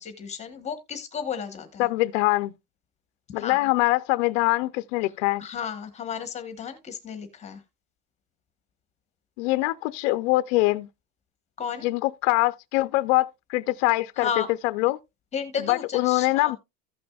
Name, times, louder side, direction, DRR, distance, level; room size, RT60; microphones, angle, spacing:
voice 1, 0.0-1.9 3.4-3.6 5.4-7.6 11.6-11.9 14.2-14.5 15.3-16.6, left 7 dB, 15° left, 1.0 m, -33 dB
voice 2, 1.8-2.5 3.3-5.4 9.4-10.9 11.8-14.3 14.6-15.0 15.7-16.6, left 20 dB, 55° left, 0.5 m, -23 dB
15.0 x 6.0 x 2.3 m
supercardioid pair, 170°, 41 cm